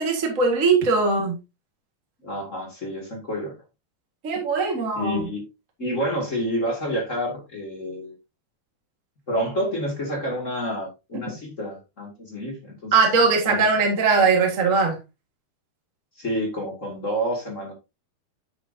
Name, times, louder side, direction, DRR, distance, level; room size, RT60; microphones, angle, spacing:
voice 1, 0.0-1.4 4.2-5.3 12.9-15.0, right 4 dB, 35° right, 1.4 m, -20 dB
voice 2, 2.2-3.6 4.9-5.4 5.8-8.2 9.3-12.9 13.5-13.6 16.2-17.7, equal, 25° left, 2.2 m, -29 dB
9.3 x 7.1 x 2.7 m
omnidirectional pair, 3.7 m